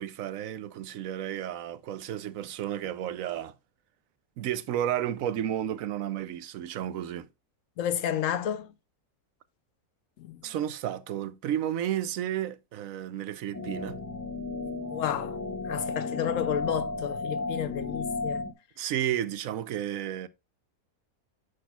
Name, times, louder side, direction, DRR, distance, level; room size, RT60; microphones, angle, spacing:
voice 1, 0.0-3.5 4.4-7.3 10.4-14.0 18.8-20.3, right 11 dB, 70° right, 1.0 m, -32 dB
voice 2, 7.8-8.7 10.2-10.4 14.9-15.4 15.6-18.4, left 10 dB, 70° left, 0.9 m, -31 dB
sound 1, 13.5-18.5, left 3 dB, 15° left, 0.6 m, -34 dB
10.0 x 6.2 x 2.3 m
omnidirectional pair, 1.5 m